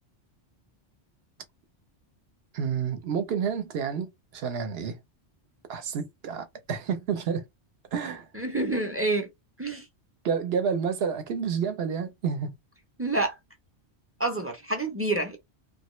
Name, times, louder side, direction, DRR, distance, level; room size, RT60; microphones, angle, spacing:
voice 1, 2.5-5.0 5.7-7.5 7.9-8.3 10.2-12.6, right 6 dB, 65° right, 0.9 m, -29 dB
voice 2, 8.3-9.3 9.6-9.9 13.0-13.4 14.2-15.4, right 2 dB, 15° right, 0.5 m, -28 dB
2.8 x 2.4 x 3.0 m
omnidirectional pair, 1.1 m